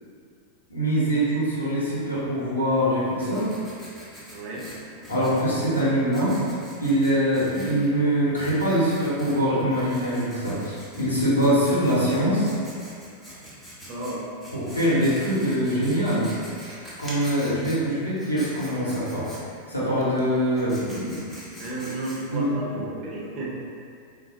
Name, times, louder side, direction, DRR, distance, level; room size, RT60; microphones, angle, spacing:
voice 1, 0.7-3.5 5.1-6.4 6.8-12.5 14.5-16.3 17.0-19.3 19.7-21.3 22.3-22.8, equal, 80° left, -9 dB, 1.0 m, -23 dB
Writing, 2.7-22.5, equal, 10° left, 0.8 m, -45 dB
voice 2, 4.3-4.7 13.9-14.3 21.6-23.5, right 1 dB, 35° right, -5 dB, 0.7 m, -32 dB
3.8 x 2.2 x 2.8 m, 2.3 s
figure-of-eight pair, 90°, 0 cm